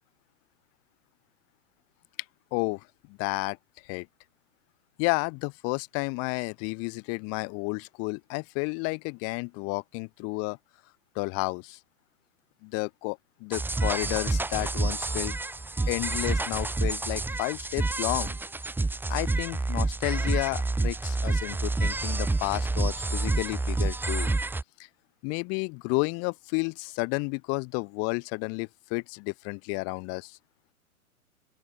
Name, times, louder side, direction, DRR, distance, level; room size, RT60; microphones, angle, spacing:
voice 1, 2.5-3.6 3.8-4.1 5.0-10.6 11.2-11.8 12.6-15.3 15.9-18.3 19.1-24.3 25.2-30.4, left 33 dB, 35° left, 2.2 m, -31 dB
sound 1, 13.5-24.6, right 2 dB, 5° right, 1.9 m, -28 dB
open air
figure-of-eight pair, 110°, 43 cm